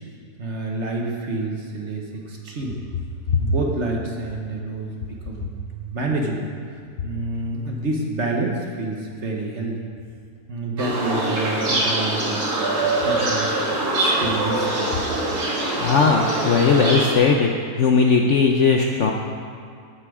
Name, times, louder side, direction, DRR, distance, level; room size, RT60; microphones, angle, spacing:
voice 1, 0.4-2.8 3.4-9.8 10.5-14.9, right 2 dB, 45° right, 0 dB, 1.3 m, -28 dB
sound 1, 10.8-17.1, right 2 dB, 65° right, 2.5 m, -23 dB
voice 2, 15.8-17.5 17.8-19.1, left 5 dB, 60° left, 2 dB, 0.8 m, -18 dB
14.5 x 5.8 x 4.8 m, 2.3 s
omnidirectional pair, 1.8 m